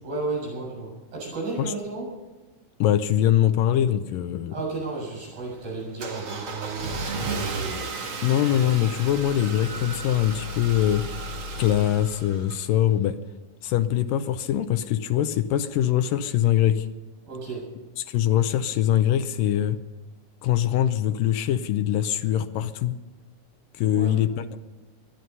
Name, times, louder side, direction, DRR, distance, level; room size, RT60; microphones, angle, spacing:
voice 1, 0.0-2.1 4.5-7.9 17.3-17.7 23.9-24.1, right 3 dB, 70° right, -3 dB, 9.2 m, -33 dB
voice 2, 2.8-4.5 8.2-11.1 11.6-13.2 13.6-16.9 18.0-19.8 20.4-23.0 23.8-24.6, left 11 dB, 75° left, 11 dB, 2.3 m, -23 dB
Car / Engine starting, 4.7-12.9, right 3 dB, 45° right, 1.9 m, -34 dB
20.5 x 12.5 x 5.5 m, 1.2 s
omnidirectional pair, 4.1 m